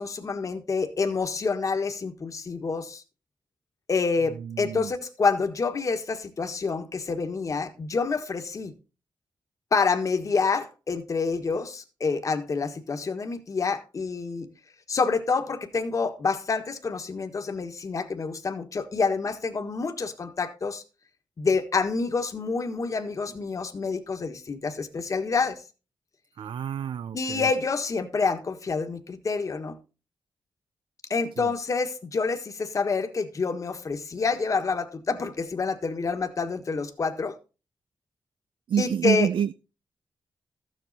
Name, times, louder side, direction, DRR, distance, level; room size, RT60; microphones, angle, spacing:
voice 1, 0.0-3.0 3.9-8.7 9.7-14.5 14.9-20.8 21.4-25.6 27.1-29.8 31.1-37.4 38.8-39.3, left 4 dB, 40° left, 1.5 m, -27 dB
voice 2, 4.4-4.9 26.4-27.5 31.4-31.5 38.7-39.5, right 8 dB, 80° right, 0.5 m, -28 dB
14.0 x 7.5 x 4.1 m
wide cardioid pair, 165°, 8 cm